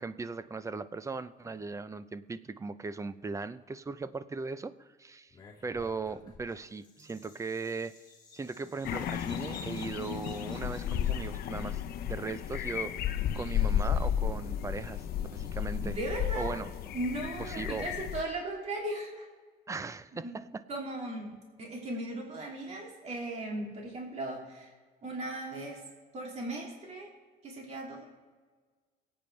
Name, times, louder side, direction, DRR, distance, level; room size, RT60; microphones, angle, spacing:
voice 1, 0.0-5.4 5.6-7.9 8.3-15.1 15.3-15.9 16.4-16.7 17.4-17.9 19.7-20.6, right 4 dB, 20° right, 14 dB, 0.6 m, -38 dB
Bird vocalization bird call bird song, 5.3-11.6, left 3 dB, 25° left, 3.4 m, -54 dB
sound 1, 8.8-18.2, left 9 dB, 65° left, 0.8 m, -33 dB
voice 2, 15.8-16.6 16.9-19.3 20.1-20.3 20.7-21.3 21.6-24.7 25.0-25.8 26.1-27.1 27.4-28.1, right 1 dB, 40° right, -2 dB, 2.8 m, -37 dB
23.5 x 8.9 x 3.3 m, 1.4 s
cardioid pair, 110°, 17 cm